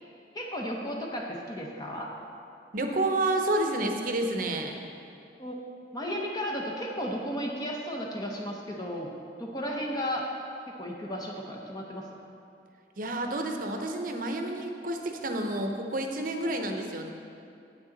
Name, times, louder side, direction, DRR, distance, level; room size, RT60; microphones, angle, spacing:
voice 1, 0.3-2.1 5.4-5.6 5.9-9.1 9.4-10.2 10.8-12.1, equal, 20° left, -1 dB, 0.8 m, -34 dB
voice 2, 2.7-4.7 13.0-17.1, right 1 dB, 50° right, 4 dB, 0.8 m, -29 dB
9.2 x 8.4 x 3.9 m, 2.6 s
head